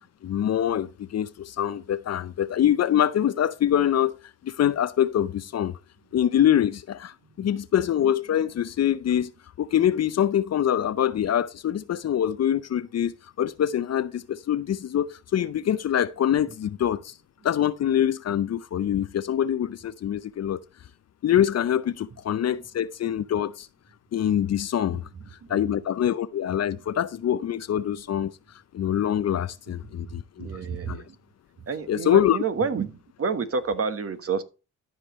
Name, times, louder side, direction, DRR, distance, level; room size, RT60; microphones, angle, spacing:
voice 1, 0.2-4.2 4.4-5.7 6.1-9.3 9.6-13.1 13.4-17.1 17.4-20.6 21.2-23.7 24.1-25.0 25.5-28.3 28.7-30.5 30.9-31.0 31.9-32.4, left 10 dB, 50° left, 0.6 m, -24 dB
voice 2, 30.4-31.1 31.7-32.9 33.2-34.4, right 5 dB, 45° right, 1.4 m, -28 dB
13.5 x 5.2 x 3.1 m
supercardioid pair, 60°, 34 cm